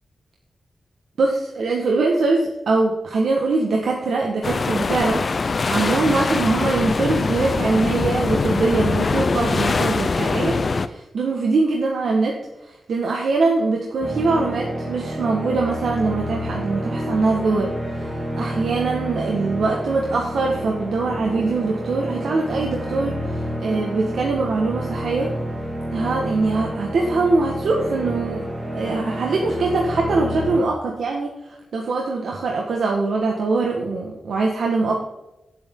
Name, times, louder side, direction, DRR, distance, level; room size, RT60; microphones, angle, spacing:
voice 1, 1.2-10.6 10.8-12.4 12.6-18.1 18.4-25.3 25.9-28.5 28.7-31.3 31.7-35.0, right 3 dB, 80° right, -1 dB, 1.7 m, -22 dB
sound 1, 4.4-10.9, left 4 dB, 40° left, 0.5 m, -22 dB
sound 2, 14.0-30.6, equal, 15° right, 2.4 m, -29 dB
18.0 x 8.3 x 3.9 m, 0.99 s
wide cardioid pair, 165°, 0 cm